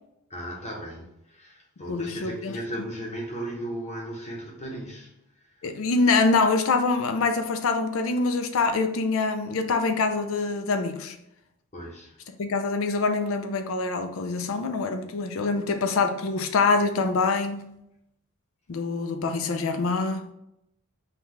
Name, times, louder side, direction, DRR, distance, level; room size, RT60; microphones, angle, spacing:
voice 1, 0.3-5.6 11.7-12.2, right 1 dB, 30° left, 0.8 m, -36 dB
voice 2, 1.9-2.6 5.6-11.2 12.4-17.6 18.7-20.3, left 4 dB, 65° left, 0.4 m, -25 dB
5.6 x 2.3 x 3.1 m
head